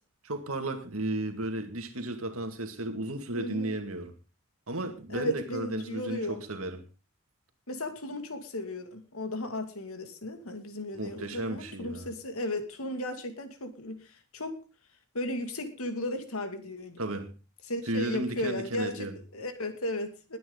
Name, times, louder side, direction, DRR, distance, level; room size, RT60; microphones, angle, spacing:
voice 1, 0.2-4.1 4.7-6.8 10.9-12.1 17.0-17.3 17.9-19.1, right 1 dB, 70° right, 2.3 m, -34 dB
voice 2, 3.4-3.7 5.1-6.4 7.7-14.6 15.1-17.0 17.7-19.1 19.3-20.4, left 1 dB, 70° left, 2.4 m, -35 dB
20.5 x 9.3 x 4.0 m
head